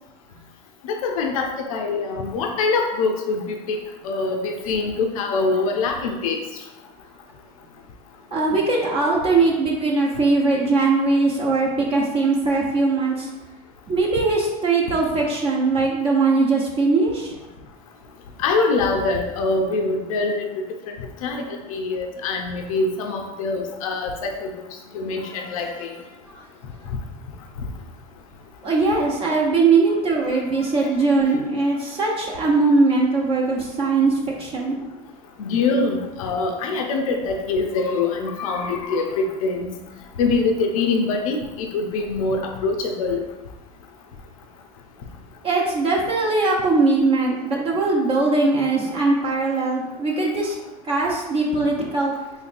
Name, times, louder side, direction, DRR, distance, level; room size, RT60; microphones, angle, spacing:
voice 1, 0.8-3.8 4.0-6.4 18.4-20.5 21.0-24.5 24.9-25.9 30.3-30.4 30.8-30.9 35.4-39.8 40.2-43.2, left 3 dB, 85° left, 3 dB, 0.5 m, -24 dB
voice 2, 8.3-13.3 13.9-17.4 28.6-34.8 45.4-50.6 50.8-52.1, right 3 dB, 35° right, -3 dB, 0.7 m, -20 dB
4.1 x 3.2 x 2.5 m, 1.0 s
hypercardioid pair, 100°, 18 cm